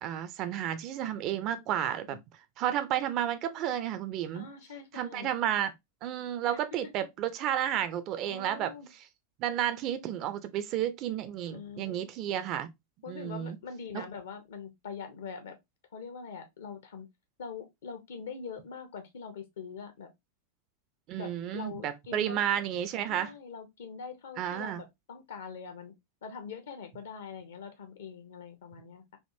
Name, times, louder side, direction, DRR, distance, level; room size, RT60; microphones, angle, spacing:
voice 1, 0.0-2.2 2.6-4.5 4.9-5.7 6.0-9.0 9.4-12.7 13.1-13.6 13.9-14.0 21.1-23.3 24.4-24.8, right 10 dB, 40° right, 0.4 m, -32 dB
voice 2, 4.3-5.3 6.5-6.9 8.3-8.9 11.5-12.1 13.0-15.6 15.9-17.1 17.4-20.1 21.2-22.6 23.1-25.9 26.2-29.2, left 5 dB, 60° left, 0.8 m, -43 dB
3.5 x 2.4 x 2.7 m
figure-of-eight pair, 90°, 0 cm